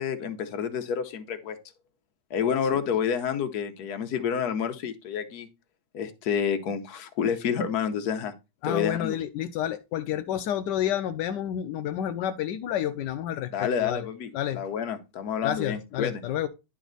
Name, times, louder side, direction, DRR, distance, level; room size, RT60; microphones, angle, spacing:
voice 1, 0.0-1.6 2.3-5.5 5.9-8.3 8.6-9.2 13.5-16.2, left 7 dB, 60° left, 1.1 m, -29 dB
voice 2, 8.6-14.1 14.3-14.6 15.4-16.5, left 10 dB, 80° left, 0.9 m, -30 dB
10.5 x 4.1 x 3.9 m
omnidirectional pair, 2.4 m